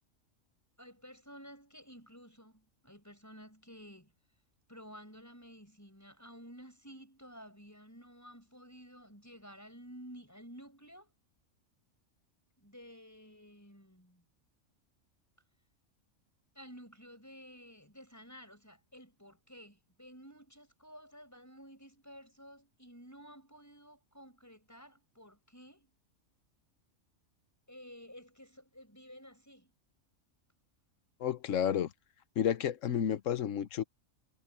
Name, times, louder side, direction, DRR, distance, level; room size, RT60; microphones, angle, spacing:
voice 1, 0.8-4.1 4.7-11.1 12.6-14.2 16.5-25.9 27.7-29.7, equal, 10° left, 6.3 m, -53 dB
voice 2, 31.2-31.9 32.4-33.8, left 9 dB, 70° left, 1.3 m, -31 dB
omnidirectional pair, 1.4 m